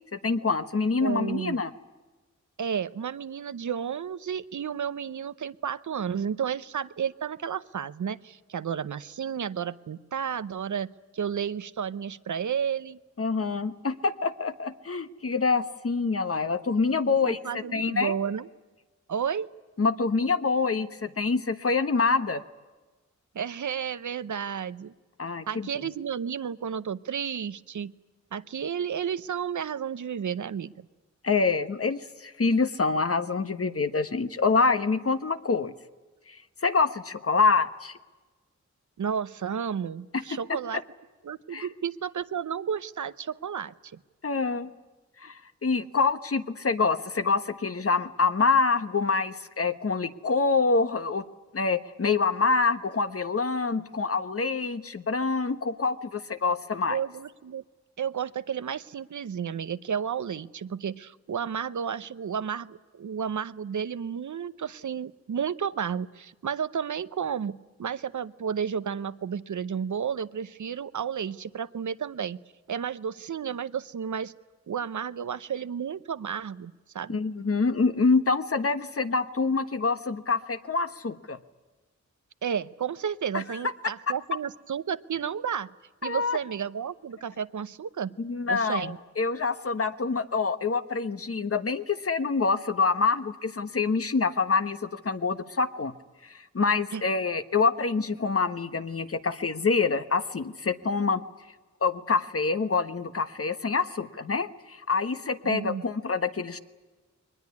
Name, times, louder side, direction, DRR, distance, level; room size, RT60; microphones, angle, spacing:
voice 1, 0.1-1.7 13.2-18.1 19.8-22.4 25.2-25.9 31.2-35.7 36.3-36.4 36.6-37.9 41.5-41.7 44.2-44.7 45.2-45.3 45.6-51.2 51.5-57.0 77.1-81.4 83.3-83.4 86.0-86.4 88.2-95.9 96.3-101.2 101.8-106.6, left 4 dB, 50° left, 10 dB, 1.3 m, -26 dB
voice 2, 1.0-1.6 2.6-10.9 11.1-13.0 17.2-18.5 19.1-19.5 23.3-24.9 25.5-27.9 28.3-30.7 39.0-40.8 41.2-44.0 56.9-57.6 58.0-72.4 72.7-74.3 74.7-77.2 82.4-85.7 86.0-88.2 88.5-89.0 96.9-97.0 105.4-105.9, right 7 dB, 85° right, 14 dB, 0.8 m, -32 dB
22.5 x 20.0 x 9.6 m, 1.3 s
wide cardioid pair, 75°, 29 cm